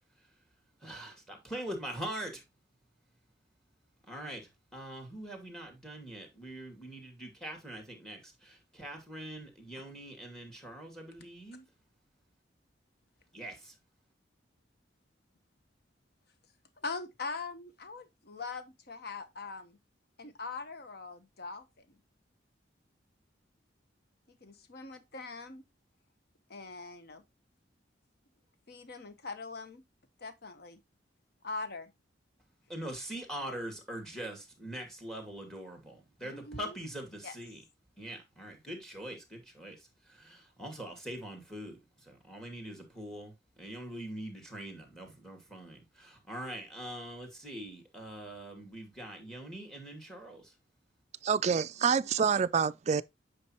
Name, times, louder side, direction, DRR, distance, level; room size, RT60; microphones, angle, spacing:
voice 1, 0.8-2.4 4.1-11.6 13.3-13.7 32.7-37.6 38.0-39.8 40.1-41.8 42.1-43.3 43.6-50.4, right 1 dB, 5° left, 2.4 m, -43 dB
voice 2, 16.8-19.8 20.2-21.9 24.3-25.6 26.5-27.2 28.7-29.8 30.2-30.8 31.4-31.9 36.2-36.8 37.2-37.4, left 4 dB, 60° left, 1.0 m, -42 dB
voice 3, 51.2-53.0, right 6 dB, 35° right, 0.4 m, -27 dB
8.6 x 5.2 x 3.0 m
head